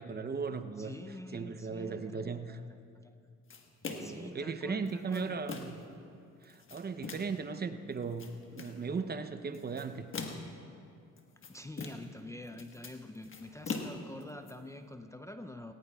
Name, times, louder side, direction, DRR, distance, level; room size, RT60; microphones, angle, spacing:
voice 1, 0.0-0.9 1.3-2.6 3.9-5.7 6.4-10.1, right 5 dB, 35° right, 10 dB, 0.7 m, -37 dB
voice 2, 0.8-2.6 3.0-3.2 4.0-5.5 11.5-15.7, left 1 dB, 10° left, 6 dB, 0.5 m, -46 dB
sound 1, 3.5-4.3 4.9-5.9 6.4-7.4 8.0-8.8 9.5-10.6 11.2-12.2 12.5-14.5, left 4 dB, 45° left, 1.4 m, -42 dB
19.0 x 19.0 x 2.3 m, 2.5 s
cardioid pair, 90°, 30 cm